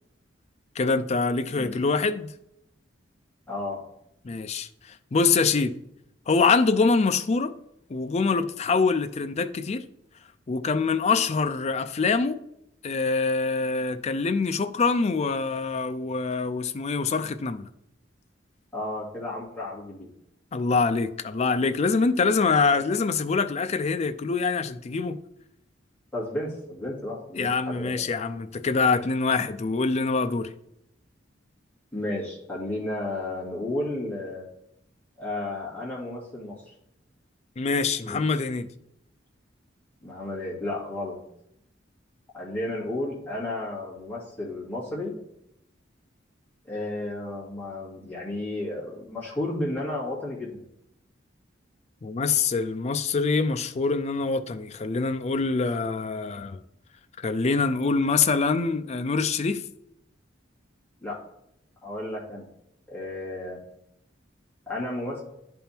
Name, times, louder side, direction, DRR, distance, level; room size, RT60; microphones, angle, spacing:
voice 1, 0.8-2.3 4.2-5.7 6.3-7.5 7.9-9.8 10.5-12.4 12.8-17.7 20.5-25.2 27.4-30.5 37.6-38.7 52.0-56.6 57.2-59.6, left 4 dB, 35° left, 0.4 m, -25 dB
voice 2, 3.5-3.8 18.7-20.1 22.7-22.8 26.1-27.9 31.9-34.5 35.2-36.7 38.0-38.2 40.0-41.2 42.3-45.1 46.6-50.6 61.0-61.2 61.8-62.5 62.9-63.6 64.7-65.2, left 1 dB, 10° left, 2.3 m, -33 dB
10.5 x 3.6 x 4.4 m
head